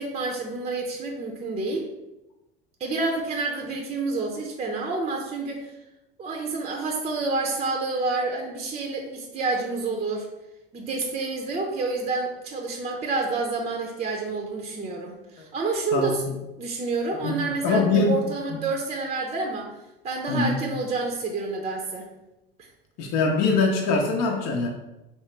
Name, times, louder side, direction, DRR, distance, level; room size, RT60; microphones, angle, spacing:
voice 1, 0.0-1.9 2.8-5.7 6.2-10.3 10.7-16.2 16.6-19.7 20.0-22.1, right 3 dB, 20° right, 2 dB, 0.6 m, -28 dB
voice 2, 17.2-18.2 20.3-20.6 23.0-24.7, left 3 dB, 55° left, 0 dB, 0.7 m, -23 dB
3.2 x 3.1 x 3.2 m, 0.97 s
hypercardioid pair, 85°, 31 cm